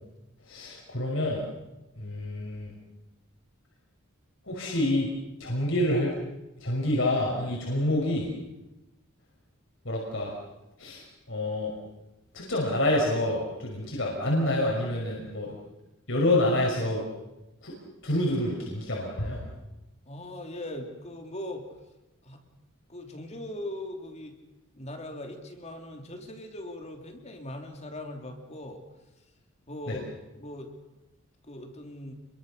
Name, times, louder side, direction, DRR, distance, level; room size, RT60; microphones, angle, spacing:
voice 1, 0.5-1.4 2.0-2.7 4.5-5.1 5.4-6.2 6.6-8.3 9.9-10.3 10.8-11.0 11.3-11.7 12.3-15.5 16.1-17.0 17.6-17.7 18.0-19.4 29.9-30.0, left 1 dB, 65° left, -2 dB, 5.7 m, -27 dB
voice 2, 20.0-21.7 22.2-22.4 22.9-24.3 24.7-28.8 29.7-30.0 30.3-30.7 31.5-32.1, left 1 dB, 35° left, 3 dB, 3.2 m, -40 dB
28.5 x 23.0 x 6.8 m, 0.99 s
head